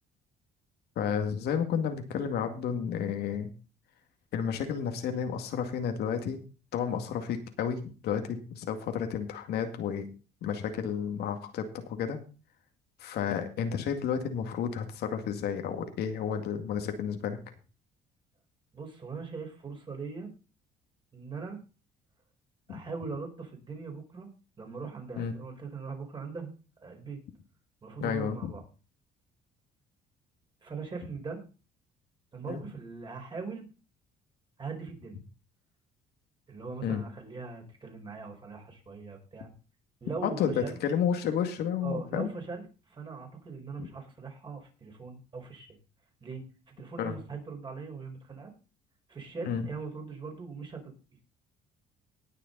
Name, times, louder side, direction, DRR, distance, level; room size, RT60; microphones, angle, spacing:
voice 1, 1.0-3.5 4.3-6.4 6.7-10.1 10.4-12.2 13.0-17.4 22.7-22.8 25.2-25.3 28.0-28.5 32.5-32.6 36.8-37.0 40.2-42.3 47.0-47.2 49.4-49.6, left 7 dB, 75° left, 6 dB, 2.1 m, -31 dB
voice 2, 18.7-20.3 21.1-21.6 22.7-24.3 24.6-26.5 26.8-27.2 27.8-28.6 30.6-31.4 32.3-33.7 34.6-35.2 36.5-39.5 40.0-40.8 41.8-45.7 46.2-48.5 49.1-50.9, right 4 dB, 30° right, 2 dB, 4.9 m, -40 dB
19.0 x 6.7 x 4.0 m, 0.35 s
cardioid pair, 110°, 17 cm